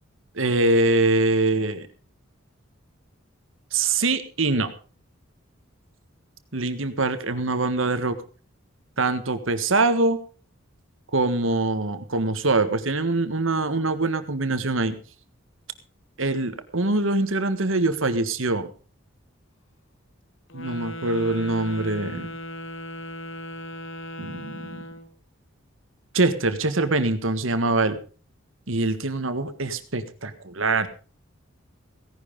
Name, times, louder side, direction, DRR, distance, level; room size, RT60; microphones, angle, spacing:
voice 1, 0.4-1.9 3.7-4.7 6.5-8.2 9.0-10.2 11.1-15.0 16.2-18.7 20.5-22.3 24.2-24.8 26.1-28.0 28.7-30.9, right 2 dB, 70° right, 11 dB, 1.6 m, -23 dB
Wind instrument woodwind instrument, 20.5-25.1, equal, 65° left, 1.8 m, -37 dB
17.0 x 11.0 x 5.3 m, 0.38 s
head